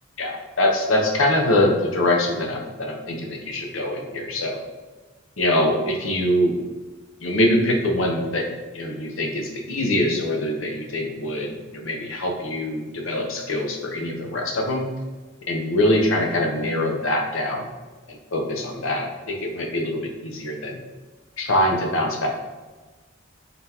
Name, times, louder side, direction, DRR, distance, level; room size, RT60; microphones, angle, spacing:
voice 1, 0.2-4.6 5.4-6.6 7.2-8.5 8.7-14.9 15.5-17.7 18.1-20.8 21.4-22.3, left 1 dB, 70° left, 1 dB, 0.7 m, -23 dB
3.9 x 3.8 x 2.9 m, 1.3 s
head